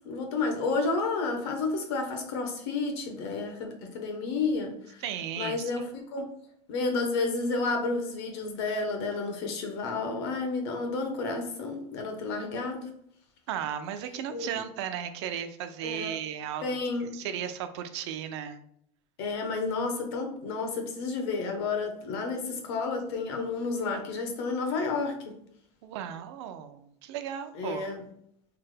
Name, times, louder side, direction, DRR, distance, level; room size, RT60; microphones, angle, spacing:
voice 1, 0.0-5.0 5.4-6.3 6.7-12.9 14.3-14.6 15.8-16.2 16.6-17.1 19.2-25.3 27.6-28.0, left 3 dB, 70° left, 0.8 m, -31 dB
voice 2, 5.0-5.7 13.5-16.6 17.1-18.6 25.8-27.9, right 9 dB, 80° right, 0.4 m, -35 dB
3.3 x 2.1 x 3.2 m
cardioid pair, 180°, 14 cm